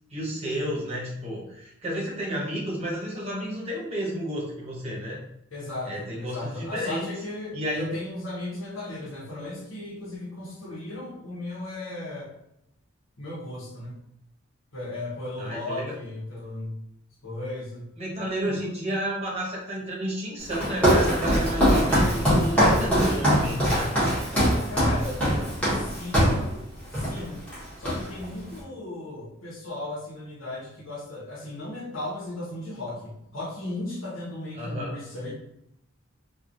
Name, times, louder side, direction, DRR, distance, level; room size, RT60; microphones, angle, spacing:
voice 1, 0.1-5.2 5.8-7.1 7.5-8.0 15.4-15.9 18.0-23.9 34.6-34.9, equal, 30° right, -4 dB, 0.9 m, -31 dB
voice 2, 5.5-12.3 13.2-14.0 14.7-16.8 17.2-17.9 18.4-18.7 24.6-25.2 25.6-26.6 26.9-27.4 27.8-35.3, left 2 dB, 75° left, -6 dB, 1.1 m, -36 dB
Walk footsteps, 20.5-26.5 26.9-27.2 27.5-28.3, equal, 5° left, 1.1 m, -22 dB
3.2 x 2.4 x 2.5 m, 0.80 s
head